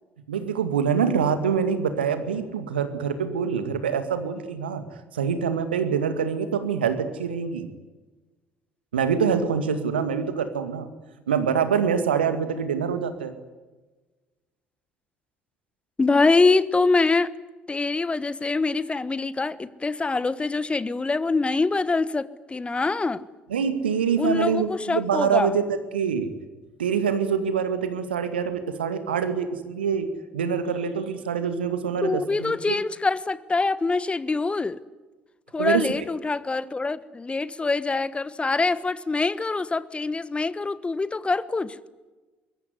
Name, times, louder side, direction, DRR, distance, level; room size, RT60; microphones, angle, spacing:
voice 1, 0.3-4.8 5.1-7.7 8.9-10.9 11.3-13.3 23.5-26.3 26.8-30.1 30.3-32.8 35.6-35.9, right 7 dB, 80° right, 2.2 m, -25 dB
voice 2, 16.0-17.3 17.7-23.2 24.2-25.5 32.0-34.8 35.5-41.8, left 3 dB, 20° left, 1.3 m, -24 dB
24.5 x 22.0 x 9.7 m
figure-of-eight pair, 50°, 5 cm